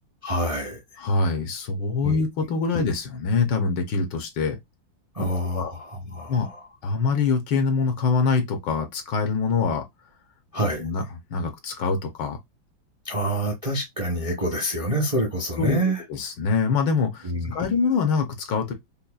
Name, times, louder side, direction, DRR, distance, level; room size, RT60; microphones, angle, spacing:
voice 1, 0.2-1.0 2.0-2.1 5.1-6.6 10.5-10.8 13.0-16.0 17.2-17.7, right 1 dB, 30° right, 0.6 m, -27 dB
voice 2, 1.0-4.6 5.2-5.7 6.3-6.5 6.8-9.8 10.8-11.0 11.3-12.4 15.6-18.7, left 4 dB, 70° left, 1.5 m, -24 dB
5.4 x 2.2 x 2.3 m
omnidirectional pair, 2.1 m